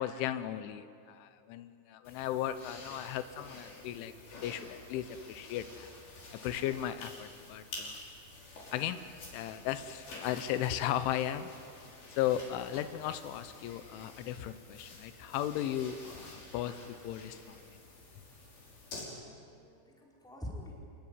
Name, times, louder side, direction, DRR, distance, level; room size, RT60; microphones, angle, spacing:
voice 1, 0.0-4.1 4.4-5.9 6.4-8.0 8.7-9.0 9.3-11.5 12.2-17.6, left 11 dB, 90° left, 11 dB, 3.4 m, -36 dB
sound 1, 2.0-19.0, left 2 dB, 55° left, 7.2 m, -50 dB
voice 2, 19.1-20.7, left 1 dB, ahead, -2 dB, 4.1 m, -46 dB
27.5 x 20.5 x 9.7 m, 2.4 s
omnidirectional pair, 5.4 m